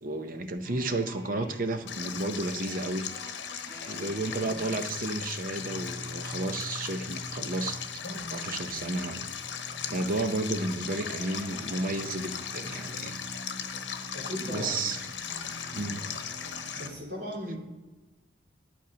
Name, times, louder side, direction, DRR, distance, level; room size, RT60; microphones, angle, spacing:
voice 1, 0.0-3.1 3.9-7.8 8.0-9.3 9.9-13.2 14.3-15.1 15.7-16.0, right 2 dB, 50° right, 8 dB, 0.7 m, -32 dB
sound 1, 0.6-16.9, equal, 15° left, 3.9 m, -45 dB
Stream, 1.9-16.9, left 8 dB, 80° left, 0.9 m, -38 dB
voice 2, 14.1-14.8 16.8-17.6, equal, 75° right, -5 dB, 4.2 m, -37 dB
11.5 x 7.2 x 5.1 m, 1.2 s
head